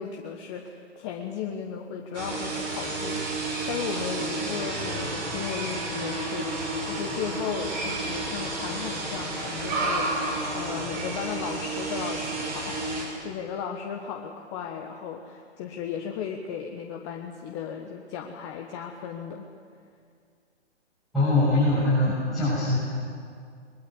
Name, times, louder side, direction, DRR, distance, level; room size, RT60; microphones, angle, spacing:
voice 1, 0.0-10.2 10.5-19.4, left 7 dB, 25° left, 1 dB, 1.3 m, -35 dB
sound 1, 2.1-13.0, right 2 dB, 40° right, 6.5 m, -31 dB
voice 2, 21.1-22.8, left 2 dB, ahead, -14 dB, 7.4 m, -22 dB
21.5 x 21.5 x 7.9 m, 2.2 s
hypercardioid pair, 145°, 35 cm